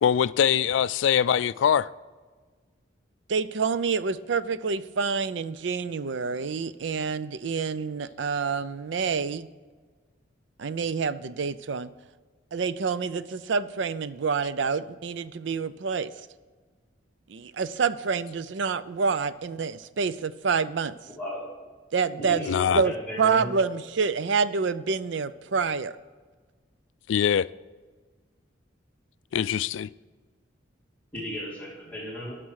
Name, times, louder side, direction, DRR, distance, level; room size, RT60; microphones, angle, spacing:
voice 1, 0.0-1.9 22.5-22.8 27.1-27.5 29.3-29.9, left 8 dB, 80° left, 0.3 m, -23 dB
voice 2, 3.3-9.5 10.6-11.9 12.5-16.1 17.3-21.0 21.9-22.5 22.7-25.9, right 5 dB, 75° right, 0.5 m, -27 dB
voice 3, 21.1-21.5 22.2-23.5 31.1-32.4, equal, 10° left, 2.7 m, -35 dB
12.0 x 6.2 x 4.7 m
head